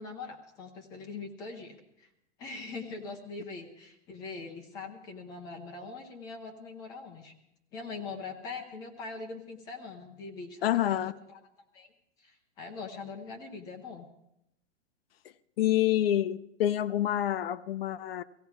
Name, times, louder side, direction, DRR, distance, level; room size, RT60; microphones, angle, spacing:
voice 1, 0.0-2.1 2.4-7.3 7.7-11.4 11.7-11.9 12.2-14.1, left 4 dB, 10° left, 3 dB, 0.7 m, -42 dB
voice 2, 10.6-11.1 15.6-18.2, left 12 dB, 55° left, 14 dB, 0.6 m, -27 dB
16.5 x 16.5 x 4.7 m, 0.83 s
supercardioid pair, 175°, 36 cm